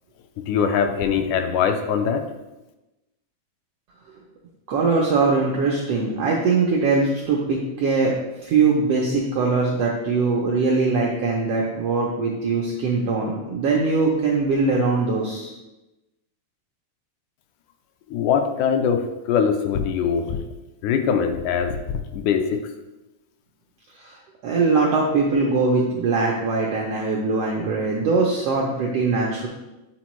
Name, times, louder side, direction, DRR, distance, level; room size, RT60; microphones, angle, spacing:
voice 1, 0.5-2.3 18.1-20.4 20.8-21.8 22.1-22.7, left 7 dB, 80° left, 6 dB, 1.9 m, -22 dB
voice 2, 4.7-8.1 8.4-15.5 24.4-29.5, right 4 dB, 80° right, -2 dB, 1.3 m, -21 dB
8.6 x 4.3 x 3.1 m, 0.99 s
omnidirectional pair, 3.6 m